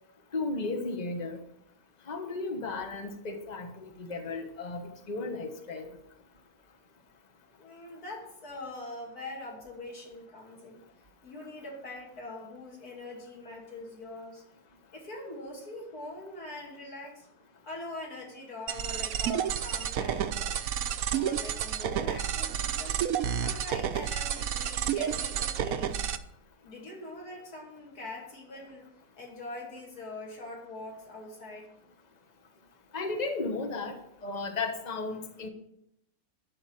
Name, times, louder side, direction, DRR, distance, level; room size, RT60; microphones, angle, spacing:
voice 1, 0.3-1.4 2.1-5.9 32.9-34.0 34.2-35.5, left 3 dB, 30° left, 5 dB, 1.3 m, -34 dB
voice 2, 7.6-10.8 11.2-14.4 14.9-17.3 17.6-20.5 21.1-23.0 23.4-25.9 26.6-28.8 29.2-31.7, left 2 dB, 85° left, -1 dB, 2.9 m, -43 dB
sound 1, 18.7-26.2, right 9 dB, 70° right, 1.1 m, -30 dB
12.0 x 5.1 x 8.7 m, 0.78 s
omnidirectional pair, 1.6 m